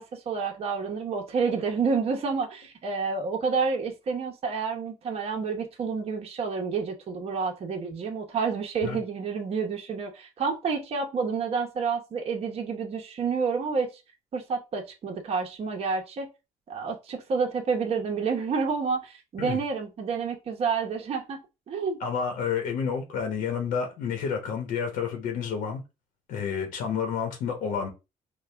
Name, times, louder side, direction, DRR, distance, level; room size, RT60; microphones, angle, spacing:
voice 1, 0.0-13.9 14.3-16.3 16.7-21.4 21.7-22.0, right 5 dB, 50° right, 0.9 m, -29 dB
voice 2, 22.0-25.8 26.3-27.9, left 6 dB, 90° left, 1.0 m, -30 dB
4.6 x 2.3 x 3.4 m
cardioid pair, 110°, 14 cm